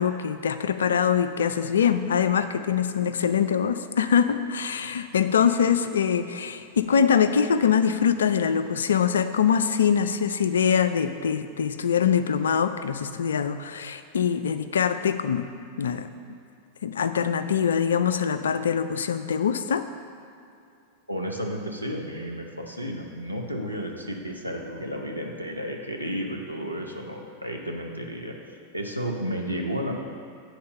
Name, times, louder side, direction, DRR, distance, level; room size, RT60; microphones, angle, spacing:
voice 1, 0.0-15.5 15.8-16.4 16.8-19.8, left 7 dB, 65° left, 11 dB, 0.4 m, -23 dB
voice 2, 21.1-28.3 28.7-30.0, equal, 90° right, 0 dB, 0.8 m, -32 dB
7.9 x 4.3 x 6.5 m, 2.5 s
figure-of-eight pair, 90°, 0 cm